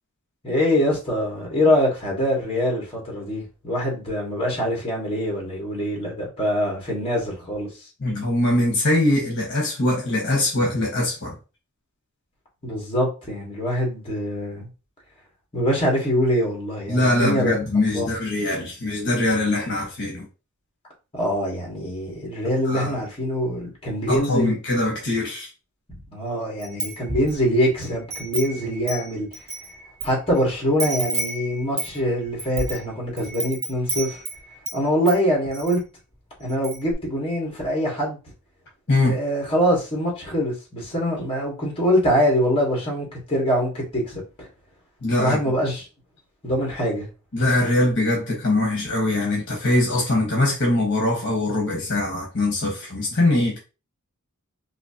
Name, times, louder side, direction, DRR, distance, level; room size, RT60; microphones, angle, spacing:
voice 1, 0.4-7.7 12.6-14.7 15.5-17.6 17.9-18.1 21.1-24.6 25.9-29.3 30.0-34.2 34.7-35.8 36.4-38.2 39.0-44.2 45.2-45.9 46.4-47.1, equal, 25° left, 1.6 m, -24 dB
voice 2, 8.0-11.4 16.9-20.2 22.7-22.9 24.1-25.5 38.9-39.2 45.0-45.4 47.3-53.6, left 1 dB, 55° left, 1.3 m, -22 dB
Wind chime, 26.6-27.4 27.8-30.1 30.4-30.5 30.8-34.8 35.1-35.8 36.1-36.2 36.5-36.9, right 2 dB, 30° right, 1.3 m, -31 dB
4.1 x 2.7 x 2.8 m
head